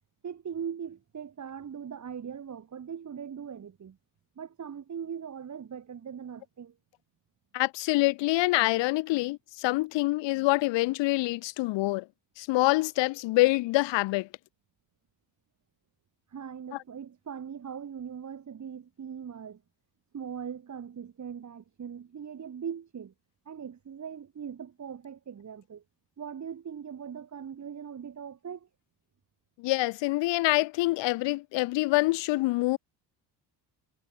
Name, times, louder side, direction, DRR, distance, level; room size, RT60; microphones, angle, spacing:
voice 1, 0.2-4.0 4.4-6.8 16.3-19.6 20.1-23.1 23.5-25.8 26.2-28.7, right 7 dB, 40° right, 3.7 m, -40 dB
voice 2, 7.5-12.1 12.4-14.3 29.6-32.8, left 20 dB, 70° left, 0.7 m, -26 dB
cardioid pair, 115°, 45 cm